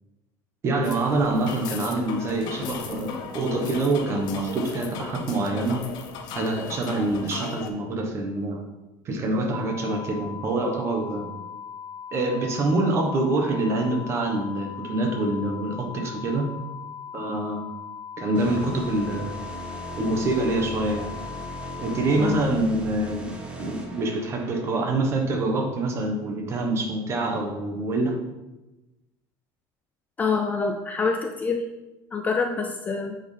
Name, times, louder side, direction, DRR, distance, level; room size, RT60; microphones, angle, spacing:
voice 1, 0.6-5.8 6.3-8.6 9.0-11.3 12.1-16.5 17.1-17.7 18.2-19.4 20.0-21.2 21.8-23.3 23.6-28.2, right 2 dB, 30° right, 3 dB, 1.1 m, -26 dB
sound 1, 0.8-7.7, left 5 dB, 50° left, 0.8 m, -36 dB
sound 2, 9.5-22.4, left 7 dB, 85° right, 1.6 m, -39 dB
sound 3, 18.3-24.8, equal, 10° right, 0.8 m, -38 dB
voice 2, 30.2-31.6 32.1-33.2, left 4 dB, 15° left, 4 dB, 0.4 m, -26 dB
8.9 x 4.5 x 3.3 m, 1.0 s
cardioid pair, 160°, 9 cm